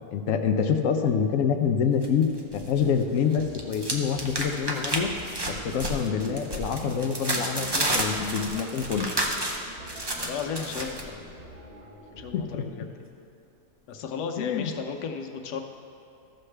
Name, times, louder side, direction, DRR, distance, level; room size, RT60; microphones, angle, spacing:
voice 1, 0.1-2.3 2.5-5.1 5.5-9.1 12.3-12.7 14.4-14.7, left 7 dB, 65° left, 6 dB, 0.9 m, -26 dB
sound 1, 2.0-2.9 3.2-11.0, right 1 dB, 40° right, 0.3 m, -31 dB
sound 2, 2.6-12.4, equal, 25° right, 1.3 m, -45 dB
voice 2, 10.2-11.3 12.2-13.0 13.9-15.6, left 6 dB, 85° left, 4 dB, 1.3 m, -35 dB
14.0 x 6.5 x 3.3 m, 2.6 s
omnidirectional pair, 1.7 m